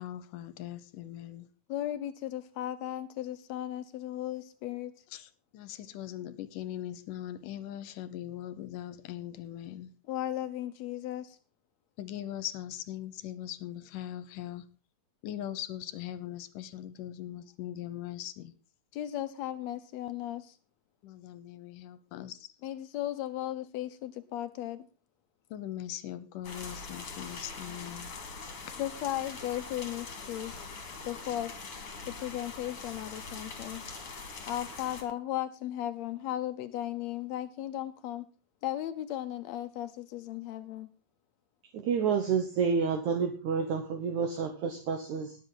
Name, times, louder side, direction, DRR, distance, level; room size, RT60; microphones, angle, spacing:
voice 1, 0.0-1.5 5.1-9.9 12.0-14.7 15.2-18.5 21.0-22.5 25.5-28.1, left 12 dB, 75° left, 2.4 m, -40 dB
voice 2, 1.7-4.9 10.1-11.4 18.9-20.6 22.6-24.9 28.8-30.6 31.0-31.5 32.1-33.8 34.5-38.3 38.6-40.9, left 13 dB, 90° left, 1.5 m, -36 dB
sound 1, 26.4-35.0, left 4 dB, 45° left, 2.6 m, -43 dB
voice 3, 41.7-45.4, right 6 dB, 65° right, 2.3 m, -29 dB
20.5 x 7.8 x 3.9 m
omnidirectional pair, 4.0 m